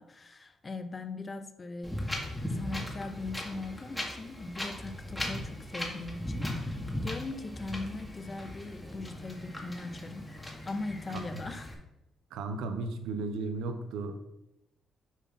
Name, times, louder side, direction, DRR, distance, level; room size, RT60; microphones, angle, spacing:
voice 1, 0.0-2.1 2.5-10.3 10.7-11.8, left 3 dB, 30° left, 9 dB, 0.8 m, -40 dB
Wind, 1.8-11.7, left 1 dB, 10° left, 1.9 m, -38 dB
voice 2, 12.3-14.2, right 3 dB, 90° right, 7 dB, 0.8 m, -35 dB
7.1 x 4.1 x 5.7 m, 0.86 s
cardioid pair, 90°, 0 cm